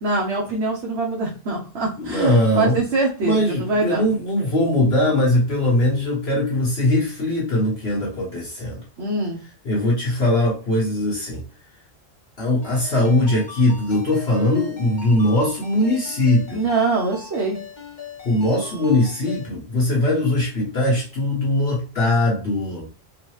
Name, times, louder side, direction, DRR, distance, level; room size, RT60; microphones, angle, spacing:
voice 1, 0.0-4.0 9.0-9.4 16.5-17.6, right 3 dB, 65° right, -3 dB, 1.1 m, -23 dB
voice 2, 2.0-2.8 3.2-8.8 9.6-11.4 12.4-16.6 18.2-22.8, left 1 dB, 55° left, -4 dB, 1.4 m, -20 dB
Ringtone, 12.6-19.5, left 4 dB, 40° left, 1.1 m, -41 dB
3.8 x 2.6 x 3.2 m, 0.37 s
omnidirectional pair, 1.3 m